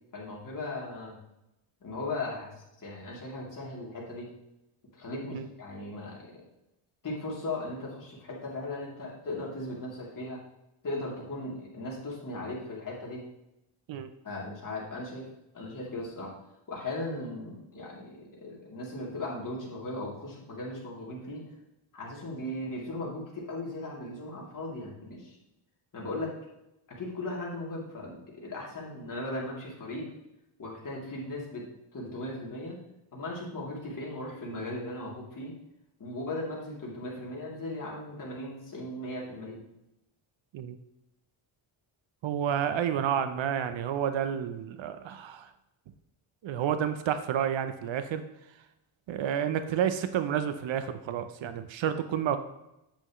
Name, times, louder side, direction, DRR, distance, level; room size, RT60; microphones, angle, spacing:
voice 1, 0.1-1.2 1.8-4.3 4.9-6.4 7.0-10.4 10.8-13.3 14.2-15.3 15.5-16.3 16.7-21.4 21.9-25.4 25.9-26.4 26.9-30.1 30.6-32.8 33.1-35.5 36.0-39.6, left 2 dB, 40° left, -4 dB, 3.2 m, -37 dB
voice 2, 42.2-45.5 46.4-48.2 49.1-52.4, right 9 dB, 65° right, 10 dB, 0.8 m, -30 dB
8.8 x 7.9 x 3.2 m, 0.89 s
cardioid pair, 120°, 50 cm